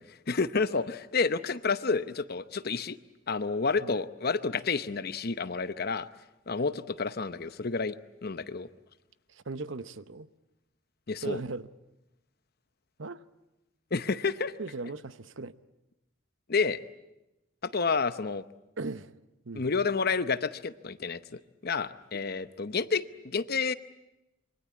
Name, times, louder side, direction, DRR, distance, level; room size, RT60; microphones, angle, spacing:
voice 1, 0.0-3.0 3.3-6.1 6.5-8.0 8.2-8.7 11.1-11.4 13.9-14.5 16.5-16.8 17.6-18.4 19.5-23.7, left 4 dB, 50° left, 0.8 m, -30 dB
voice 2, 9.3-10.3 11.2-11.7 13.0-13.2 14.6-15.5 18.8-19.1 19.4-19.7 22.1-22.3, right 3 dB, 70° right, 0.9 m, -38 dB
26.5 x 23.5 x 8.5 m
head